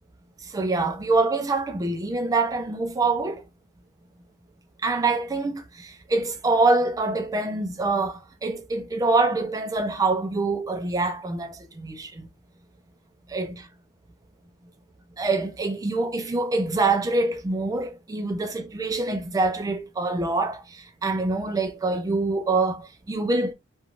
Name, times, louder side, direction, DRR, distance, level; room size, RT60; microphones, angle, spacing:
voice 1, 0.4-3.4 4.8-12.3 13.3-13.7 15.2-23.5, right 3 dB, 15° right, 0.3 m, -25 dB
2.5 x 2.2 x 2.9 m
head